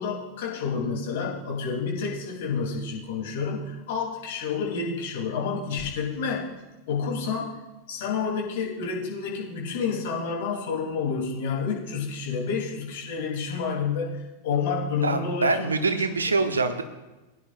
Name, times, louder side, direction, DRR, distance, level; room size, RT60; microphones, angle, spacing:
voice 1, 0.0-6.5 6.9-7.6 7.9-16.0, left 5 dB, 55° left, -3 dB, 3.4 m, -29 dB
voice 2, 15.0-16.8, right 3 dB, 75° right, 8 dB, 0.9 m, -24 dB
21.0 x 9.9 x 2.6 m, 1.1 s
figure-of-eight pair, 90°, 0 cm